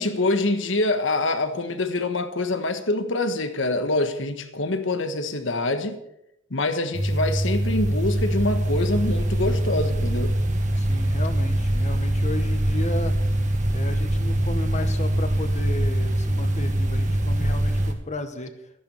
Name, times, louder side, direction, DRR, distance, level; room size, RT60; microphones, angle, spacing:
voice 1, 0.0-6.0 6.5-10.3, left 2 dB, 70° left, 1.4 m, -25 dB
sound 1, 6.9-17.9, right 1 dB, 40° right, 1.5 m, -23 dB
voice 2, 10.8-13.2 13.7-18.5, left 2 dB, 40° left, 1.4 m, -34 dB
13.5 x 11.5 x 5.6 m
head